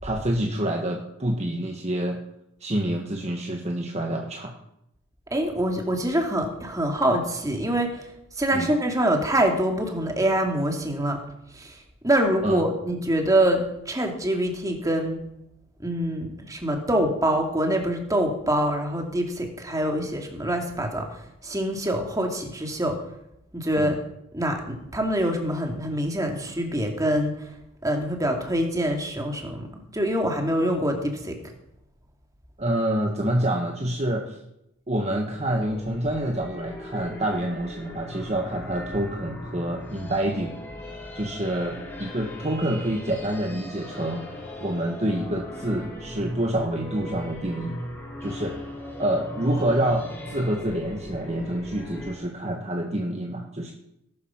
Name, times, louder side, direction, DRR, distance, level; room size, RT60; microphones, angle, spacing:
voice 1, 0.0-2.2 2.6-4.5 8.5-8.7 12.4-12.6 20.0-20.1 23.8-23.9 32.6-34.4 34.9-40.6 41.1-44.2 44.6-47.8 48.2-48.6 49.0-53.7, right 1 dB, 30° right, 2 dB, 1.6 m, -27 dB
voice 2, 5.3-8.1 8.4-11.2 11.5-11.8 12.0-15.2 15.8-21.1 21.4-23.0 23.5-24.0 24.3-27.3 27.8-31.4, right 1 dB, 15° right, 2 dB, 2.6 m, -25 dB
sound 1, 35.3-52.1, left 1 dB, 10° left, 4.7 m, -38 dB
18.5 x 12.5 x 5.8 m, 0.83 s
head